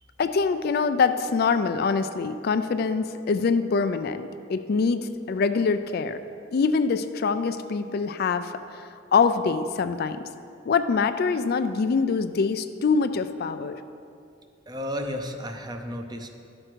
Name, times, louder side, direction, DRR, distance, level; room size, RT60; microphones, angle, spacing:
voice 1, 0.2-6.2 6.5-10.2 10.7-13.7, left 5 dB, 50° left, 10 dB, 0.4 m, -24 dB
voice 2, 14.7-16.3, equal, 20° right, 5 dB, 0.6 m, -33 dB
12.0 x 6.5 x 4.5 m, 2.5 s
head